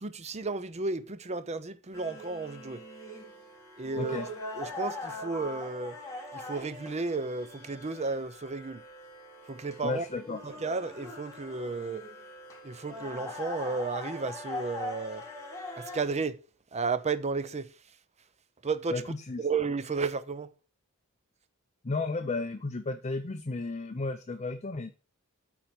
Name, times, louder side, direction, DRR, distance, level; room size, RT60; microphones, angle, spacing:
voice 1, 0.0-2.8 3.8-4.2 4.5-6.0 6.3-8.8 9.5-10.0 10.4-12.0 12.6-15.2 15.8-16.4 16.7-17.7 18.6-19.0 19.4-20.5, right 4 dB, 30° right, 0.7 m, -33 dB
sound 1, 1.9-16.1, left 1 dB, 15° left, 3.3 m, -42 dB
voice 2, 4.0-4.3 9.8-10.4 18.9-19.5 21.8-24.9, left 3 dB, 30° left, 0.6 m, -33 dB
8.7 x 4.5 x 6.8 m
head